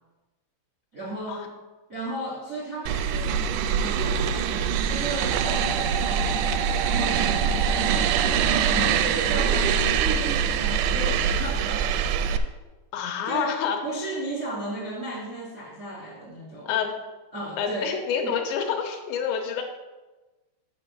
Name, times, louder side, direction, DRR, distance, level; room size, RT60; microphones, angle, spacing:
voice 1, 0.9-1.5 1.9-12.0 13.2-16.7 17.3-17.9 18.2-18.4, right 2 dB, 65° right, -4 dB, 0.8 m, -35 dB
sound 1, 2.9-12.4, right 7 dB, 85° right, 2.5 m, -24 dB
sound 2, 5.3-10.8, right 3 dB, 10° right, 0.5 m, -34 dB
voice 2, 12.9-13.8 16.7-16.9 17.6-19.6, left 7 dB, 80° left, 3 dB, 3.0 m, -27 dB
7.5 x 5.5 x 6.7 m, 1.2 s
omnidirectional pair, 5.3 m